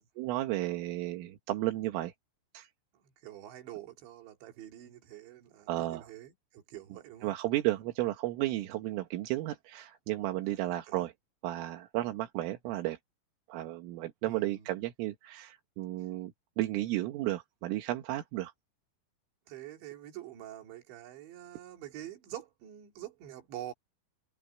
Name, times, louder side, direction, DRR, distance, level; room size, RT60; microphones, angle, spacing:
voice 1, 0.2-2.1 2.5-2.7 5.7-6.1 7.2-11.1 11.4-13.0 13.5-18.5, right 16 dB, 85° right, 4.0 m, -33 dB
voice 2, 2.9-7.3 10.9-11.1 14.3-14.7 19.5-23.7, right 12 dB, 65° right, 4.8 m, -46 dB
omnidirectional pair, 5.7 m